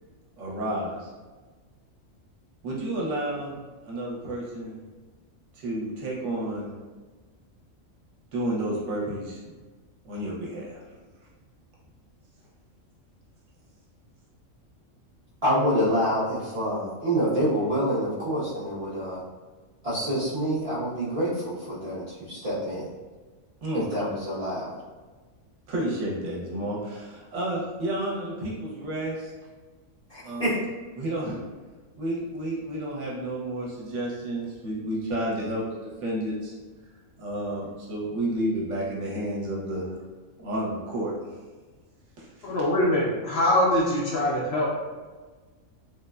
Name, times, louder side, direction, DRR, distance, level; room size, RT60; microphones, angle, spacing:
voice 1, 0.4-1.1 2.6-3.5 3.8-4.8 5.5-6.7 8.3-9.4 10.0-10.8 23.6-23.8 25.7-29.3 30.2-30.6 31.0-31.4 32.0-36.5 37.2-39.9 40.4-41.4 42.2-42.5, right 1 dB, 65° right, -4 dB, 1.0 m, -31 dB
voice 2, 15.4-19.2 19.8-22.9 23.7-24.8 30.1-30.6, equal, 45° right, -11 dB, 0.5 m, -27 dB
voice 3, 42.4-44.7, left 1 dB, 65° left, -5 dB, 0.7 m, -23 dB
3.2 x 2.1 x 2.3 m, 1.3 s
omnidirectional pair, 1.4 m